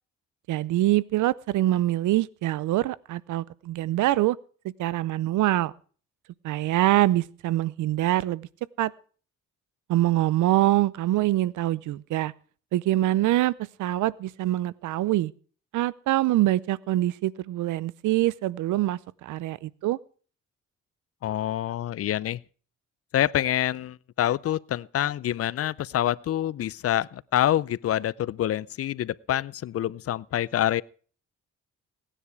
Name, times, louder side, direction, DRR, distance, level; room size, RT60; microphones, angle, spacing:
voice 1, 0.5-4.4 4.8-5.7 6.4-8.5 8.8-8.9 9.9-12.3 12.7-13.5 13.8-15.3 15.7-20.0, right 15 dB, 80° right, 0.6 m, -24 dB
voice 2, 21.2-22.4 23.1-30.8, left 12 dB, 50° left, 0.5 m, -26 dB
17.5 x 10.0 x 4.8 m
cardioid pair, 90°, 30 cm